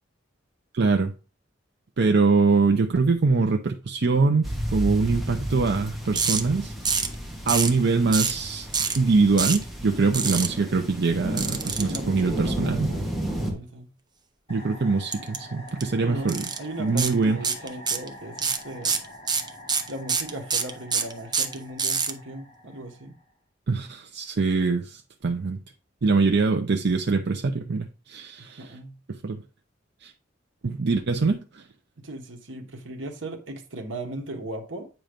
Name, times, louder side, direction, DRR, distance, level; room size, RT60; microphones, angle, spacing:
voice 1, 0.7-1.1 2.0-6.7 7.5-8.7 9.0-12.9 14.5-16.4 16.8-17.4 23.7-25.6 26.0-28.7 29.1-29.4 30.0-30.1 30.6-31.6, right 4 dB, 60° right, 0.6 m, -23 dB
sound 1, 4.4-13.5, right 1 dB, ahead, 1.5 m, -32 dB
sound 2, 6.2-6.4 6.9-7.2 7.5-7.8 8.1-8.4 8.7-9.0 9.4-9.6 10.1-10.5 11.4-12.0 15.1-15.4 15.7-15.8 16.3-16.6 17.0-17.1 17.4-18.1 18.4-22.1, right 5 dB, 25° right, 0.7 m, -25 dB
voice 2, 11.7-13.9 16.0-19.0 19.9-23.1 28.4-29.0 32.0-34.9, right 1 dB, 80° right, 1.2 m, -38 dB
sound 3, 14.5-23.3, left 1 dB, 35° left, 1.8 m, -45 dB
8.9 x 3.1 x 5.1 m
head